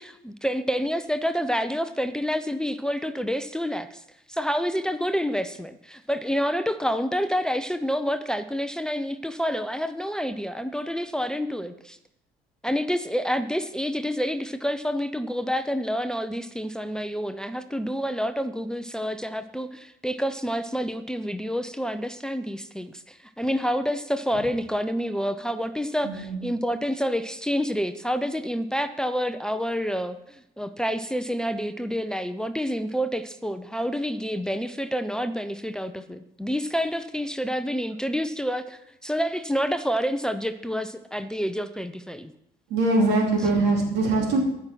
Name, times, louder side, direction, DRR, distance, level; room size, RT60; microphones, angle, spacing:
voice 1, 0.0-4.0 4.3-12.0 12.6-42.3, equal, 5° left, 11 dB, 0.6 m, -28 dB
voice 2, 26.0-26.4 42.7-44.4, right 2 dB, 85° right, 1 dB, 3.2 m, -22 dB
14.0 x 5.8 x 6.1 m, 0.80 s
cardioid pair, 110°, 17 cm